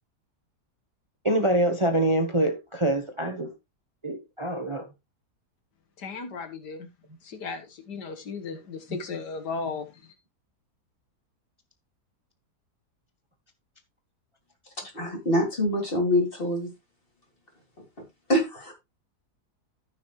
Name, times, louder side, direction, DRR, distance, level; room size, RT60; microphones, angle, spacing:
voice 1, 1.2-3.5 4.0-4.9, right 1 dB, 20° right, 1.1 m, -25 dB
voice 2, 6.0-6.9 7.2-10.2, left 4 dB, 80° left, 2.0 m, -36 dB
voice 3, 14.9-16.7 18.0-18.1 18.3-18.7, left 1 dB, 30° left, 3.7 m, -25 dB
14.5 x 6.3 x 3.1 m
omnidirectional pair, 1.8 m